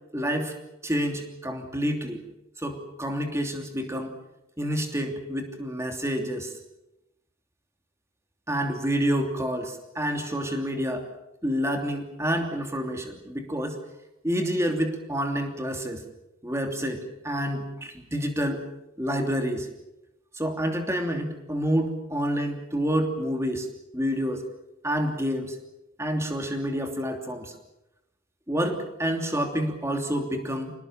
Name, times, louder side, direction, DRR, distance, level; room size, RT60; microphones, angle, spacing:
voice 1, 0.1-0.5 0.8-2.2 2.6-4.2 4.6-6.5 8.5-11.1 11.4-13.8 14.2-16.0 16.4-18.6 19.0-19.7 20.3-23.7 23.9-24.4 24.8-25.6 26.0-27.5 28.5-30.7, equal, 15° right, 4 dB, 3.0 m, -28 dB
28.0 x 19.0 x 7.5 m, 0.90 s
head